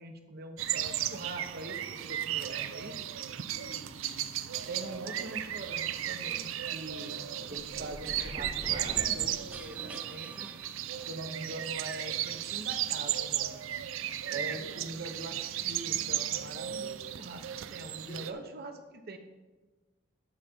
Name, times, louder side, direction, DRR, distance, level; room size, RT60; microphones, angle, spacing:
voice 1, 0.0-3.1 4.7-7.1 7.5-10.5 11.0-13.6 14.3-19.2, right 2 dB, 50° right, 6 dB, 0.9 m, -43 dB
sound 1, 0.6-18.3, right 11 dB, 80° right, 0.4 m, -35 dB
voice 2, 3.1-4.2 7.0-7.4 11.2-11.5 14.3-15.1 17.9-18.2, left 1 dB, 80° left, -3 dB, 2.9 m, -51 dB
sound 2, 7.4-11.4, right 1 dB, 10° right, 0.4 m, -45 dB
12.0 x 4.9 x 4.4 m, 1.2 s
head